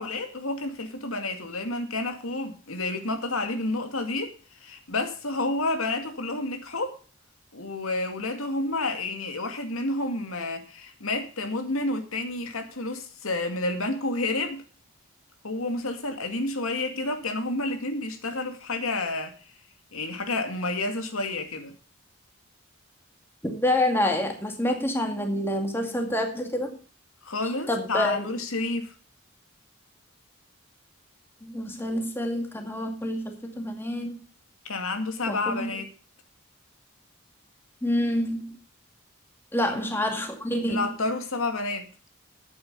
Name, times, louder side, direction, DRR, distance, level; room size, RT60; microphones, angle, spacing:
voice 1, 0.0-4.3 4.6-7.0 7.5-14.6 15.4-19.3 19.9-21.7 27.2-28.9 34.6-35.9 39.6-39.9 40.7-41.9, left 2 dB, 80° left, 2.2 m, -30 dB
voice 2, 23.4-26.8 27.7-28.2 31.4-34.2 35.3-35.7 37.8-38.6 39.5-40.9, left 1 dB, 10° left, 2.1 m, -27 dB
11.5 x 8.8 x 5.4 m
head